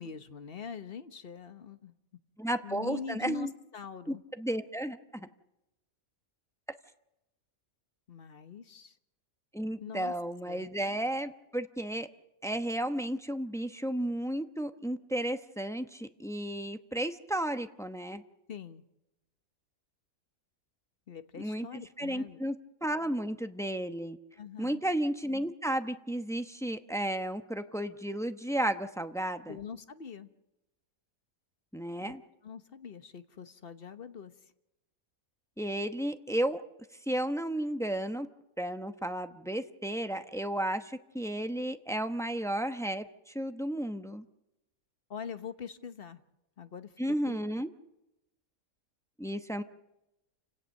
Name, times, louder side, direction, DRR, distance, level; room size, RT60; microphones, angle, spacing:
voice 1, 0.0-1.9 2.6-4.2 8.1-9.0 9.8-10.1 10.5-10.7 18.5-18.8 21.1-22.4 24.4-24.8 29.5-30.3 32.0-32.1 32.4-34.4 45.1-46.2 46.6-46.9 47.3-47.4, left 7 dB, 45° left, 10 dB, 1.3 m, -43 dB
voice 2, 2.4-3.5 4.1-5.3 9.5-12.1 12.4-18.2 21.4-22.6 22.8-24.2 24.6-29.6 31.7-32.2 35.6-36.6 37.1-38.3 38.6-44.2 47.0-47.7 49.2-49.6, right 1 dB, 5° left, 8 dB, 0.7 m, -33 dB
29.0 x 17.5 x 6.6 m, 0.92 s
omnidirectional pair, 1.5 m